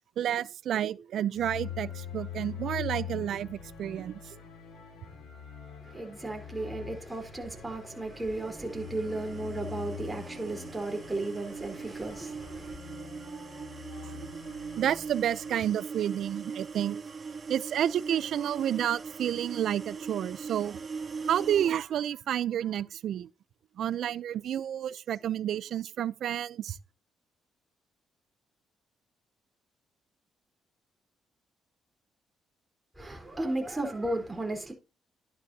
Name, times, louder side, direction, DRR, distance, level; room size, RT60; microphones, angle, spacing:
voice 1, 0.2-4.2 14.1-17.0 17.5-20.8 21.3-23.3 23.8-26.8, right 10 dB, 70° right, 0.5 m, -30 dB
sound 1, 1.3-15.9, left 9 dB, 80° left, 7.2 m, -44 dB
voice 2, 5.8-12.8 33.0-34.7, right 2 dB, 15° right, 4.0 m, -35 dB
sound 2, 7.9-21.8, right 5 dB, 35° right, 2.6 m, -41 dB
11.5 x 11.0 x 2.8 m
cardioid pair, 90°, 0 cm